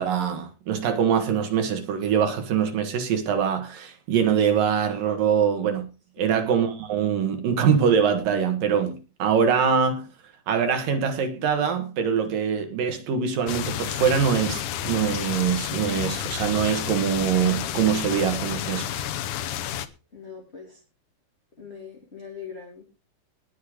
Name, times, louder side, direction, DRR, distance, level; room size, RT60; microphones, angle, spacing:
voice 1, 0.0-5.8 6.2-10.1 10.5-19.0, right 7 dB, 60° right, 2.8 m, -23 dB
sound 1, 13.5-19.9, left 11 dB, 85° left, 1.8 m, -30 dB
voice 2, 20.1-20.8 21.6-22.8, left 6 dB, 20° left, 2.3 m, -41 dB
20.0 x 6.7 x 5.0 m
omnidirectional pair, 5.0 m